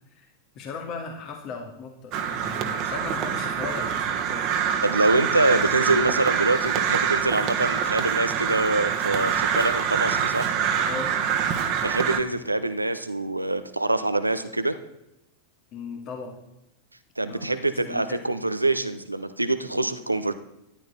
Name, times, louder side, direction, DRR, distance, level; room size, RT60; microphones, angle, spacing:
voice 1, 0.5-4.5 10.9-11.1 15.7-16.4 17.3-17.6 17.9-18.2, left 4 dB, 35° left, 3 dB, 2.2 m, -37 dB
Crow, 2.1-12.2, right 8 dB, 40° right, 1.5 m, -25 dB
voice 2, 4.8-10.5 11.8-14.8 17.2-20.3, right 2 dB, 85° right, 11 dB, 1.0 m, -25 dB
13.5 x 11.5 x 4.2 m, 0.86 s
figure-of-eight pair, 90°, 0 cm